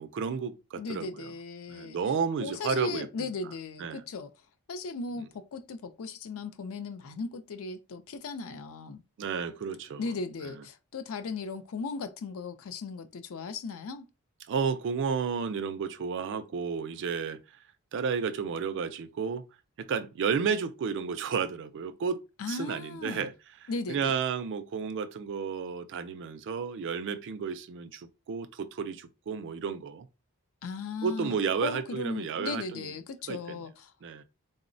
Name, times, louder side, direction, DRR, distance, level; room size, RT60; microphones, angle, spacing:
voice 1, 0.0-1.3 1.7-3.3 3.8-4.0 5.2-5.3 9.2-10.0 10.4-10.5 14.5-17.4 17.9-19.4 19.8-22.2 22.5-23.3 23.9-30.1 31.0-32.9 33.3-33.6 34.0-34.2, right 6 dB, 55° right, 0.3 m, -32 dB
voice 2, 0.8-2.0 2.4-4.3 4.7-9.0 10.0-14.1 22.4-23.3 23.7-24.2 30.6-31.4 31.6-33.9, left 4 dB, 65° left, 0.4 m, -37 dB
3.7 x 2.0 x 2.5 m
head